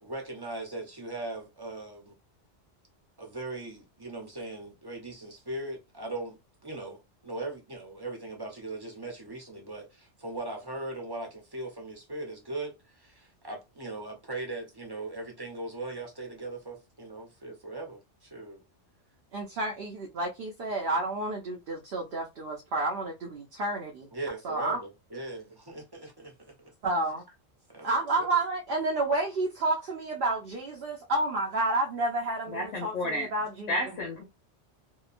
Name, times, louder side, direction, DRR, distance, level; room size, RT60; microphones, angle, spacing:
voice 1, 0.0-2.2 3.2-18.6 24.1-26.7 27.7-28.4, right 2 dB, 25° right, 0.6 m, -39 dB
voice 2, 19.3-24.1 24.4-24.8 26.8-27.2 27.8-33.7, right 2 dB, 60° right, 0.7 m, -30 dB
voice 3, 32.5-33.3 33.7-34.2, left 1 dB, 85° left, 1.2 m, -31 dB
2.8 x 2.2 x 2.4 m
omnidirectional pair, 1.2 m